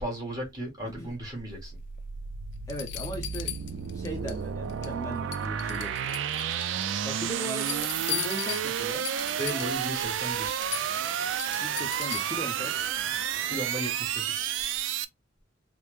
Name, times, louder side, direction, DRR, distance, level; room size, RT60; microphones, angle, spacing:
voice 1, 0.0-1.8 9.4-10.6 13.4-14.5, right 1 dB, 20° right, 1.4 m, -35 dB
sound 1, 1.5-15.0, right 9 dB, 80° right, 0.3 m, -31 dB
sound 2, 2.0-2.1 2.7-4.4 4.7-5.0 5.3-6.7 7.1-9.9 10.2-10.3 10.6-12.5 14.2-14.3, left 14 dB, 65° left, 0.3 m, -38 dB
voice 2, 2.7-3.5 3.9-6.2 7.0-9.1 11.6-12.8, equal, 15° left, 0.5 m, -38 dB
3.3 x 2.1 x 3.1 m
head